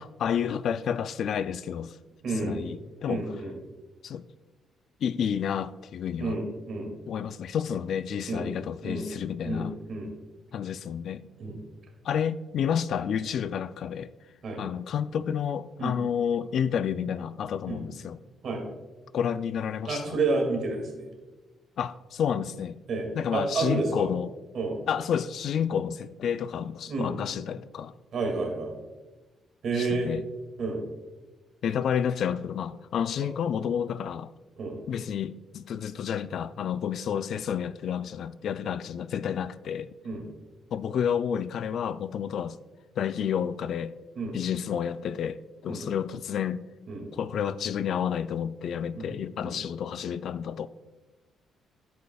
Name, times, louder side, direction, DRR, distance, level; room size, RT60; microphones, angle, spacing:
voice 1, 0.0-2.0 2.4-3.2 4.0-4.2 5.0-6.4 7.1-9.7 10.5-11.3 12.0-14.1 14.6-18.2 19.1-20.2 21.8-22.8 23.2-24.3 24.9-27.9 29.7-30.2 31.6-34.3 34.9-39.9 40.7-42.6 43.0-43.9 44.3-46.6 47.1-50.7, left 8 dB, 65° left, 0.3 m, -30 dB
voice 2, 2.2-2.6 3.1-3.6 6.2-6.9 8.3-8.5 8.8-9.1 9.4-10.1 11.4-11.6 14.4-14.6 15.8-15.9 17.7-17.8 18.4-18.6 19.8-21.0 22.9-24.1 24.5-24.8 26.9-27.1 28.1-28.7 29.6-30.1 30.6-30.8 34.6-34.8 40.0-40.3 44.2-44.4 45.7-45.9 46.9-47.1 48.9-49.1 49.4-49.6, right 3 dB, 60° right, 2.2 m, -30 dB
10.5 x 8.4 x 2.3 m
cardioid pair, 90°, 0 cm